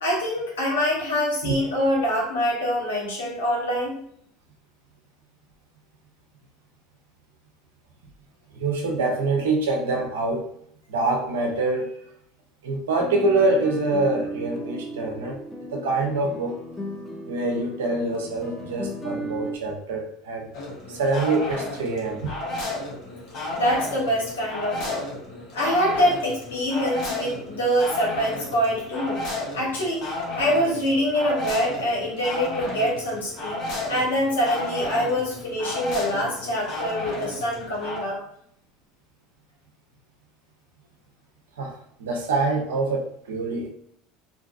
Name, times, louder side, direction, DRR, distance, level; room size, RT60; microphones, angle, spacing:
voice 1, 0.0-4.0 23.5-25.0 25.5-29.2 29.5-30.1 30.3-33.6 33.9-38.2, equal, 85° left, -3 dB, 1.0 m, -25 dB
voice 2, 8.5-10.5 10.9-12.0 12.6-15.4 15.7-16.6 17.2-20.5 20.9-22.3 41.6-43.7, right 3 dB, 75° right, 3 dB, 0.5 m, -25 dB
sound 1, 13.0-19.6, right 1 dB, 10° left, 0.6 m, -35 dB
sound 2, 20.5-38.0, left 2 dB, 50° left, 1.0 m, -33 dB
2.6 x 2.2 x 2.4 m, 0.68 s
hypercardioid pair, 75°, 0 cm